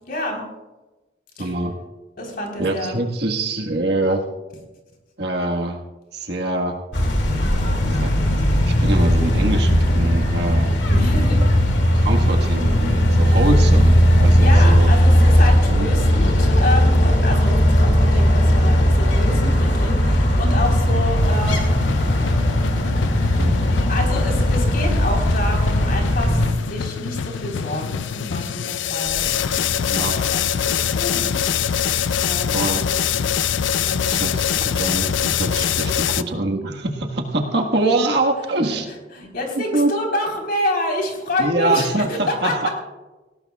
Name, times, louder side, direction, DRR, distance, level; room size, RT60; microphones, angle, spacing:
voice 1, 0.1-0.5 1.4-1.5 2.2-3.0 10.9-11.4 14.4-21.7 23.9-31.4 32.2-32.7 33.8-34.2 36.0-36.1 38.7-38.8 39.1-42.7, left 1 dB, 55° left, 1 dB, 3.8 m, -28 dB
voice 2, 1.4-1.7 2.6-4.2 5.2-5.8 6.1-6.8 7.8-10.7 11.9-14.9 15.7-15.9 17.3-17.4 19.3-19.5 23.4-23.6 29.9-30.3 32.5-32.8 34.0-38.9 39.5-39.9 41.4-42.7, right 2 dB, 60° right, 2 dB, 1.5 m, -24 dB
sound 1, 6.9-26.5, equal, 70° left, 2.4 m, -17 dB
sound 2, 21.2-36.2, left 8 dB, 90° left, 0.4 m, -24 dB
19.0 x 17.0 x 2.4 m, 1.1 s
head